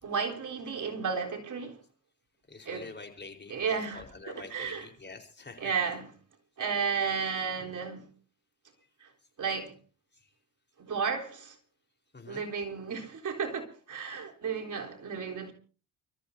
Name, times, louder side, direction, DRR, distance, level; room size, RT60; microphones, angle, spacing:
voice 1, 0.0-1.8 2.6-2.9 3.5-4.9 5.6-6.1 6.6-8.1 9.0-9.1 9.4-9.7 10.8-11.6 12.3-15.5, right 6 dB, 55° right, 3.9 m, -33 dB
voice 2, 2.5-3.5 3.9-5.6 12.1-12.4, left 3 dB, 30° left, 4.4 m, -46 dB
29.0 x 14.0 x 2.8 m
cardioid pair, 65°, 36 cm